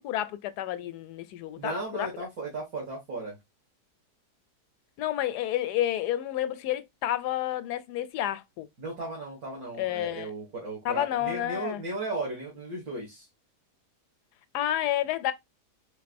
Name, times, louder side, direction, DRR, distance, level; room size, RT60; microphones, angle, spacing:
voice 1, 0.0-2.3 5.0-8.7 9.8-10.3 10.8-11.8 14.5-15.3, left 12 dB, 80° left, 1.1 m, -30 dB
voice 2, 1.6-3.4 8.8-13.3, right 2 dB, 60° right, 2.2 m, -35 dB
4.6 x 3.6 x 2.5 m
omnidirectional pair, 1.7 m